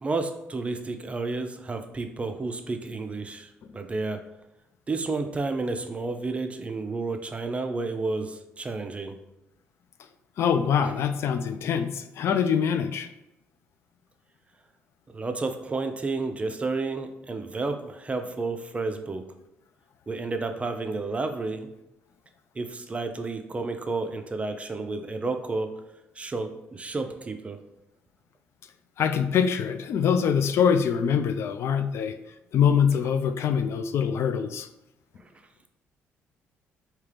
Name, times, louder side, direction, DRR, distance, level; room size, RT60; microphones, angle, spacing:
voice 1, 0.0-4.2 4.9-9.2 10.8-11.0 15.1-19.3 20.1-21.7 22.6-25.7 26.2-27.6 35.2-35.3, right 3 dB, 25° right, 7 dB, 0.5 m, -31 dB
voice 2, 10.4-13.1 29.0-32.2 32.5-34.7, left 7 dB, 65° left, 9 dB, 0.3 m, -24 dB
3.5 x 2.8 x 3.3 m, 0.90 s
supercardioid pair, 75°, 5 cm